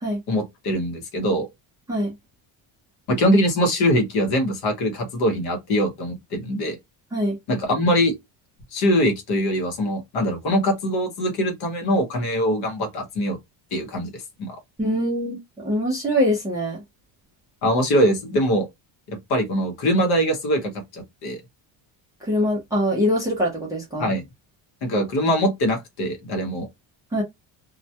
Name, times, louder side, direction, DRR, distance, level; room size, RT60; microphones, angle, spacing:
voice 1, 0.3-1.5 3.1-6.8 7.5-8.2 8.7-13.4 13.7-14.1 14.4-14.6 17.6-18.7 19.1-21.4 24.0-24.2 24.8-26.7, equal, 50° left, 0.9 m, -22 dB
voice 2, 14.8-16.8 22.2-24.1 27.1-27.2, equal, 10° right, 0.4 m, -23 dB
2.2 x 2.1 x 2.7 m
cardioid pair, 175°, 48 cm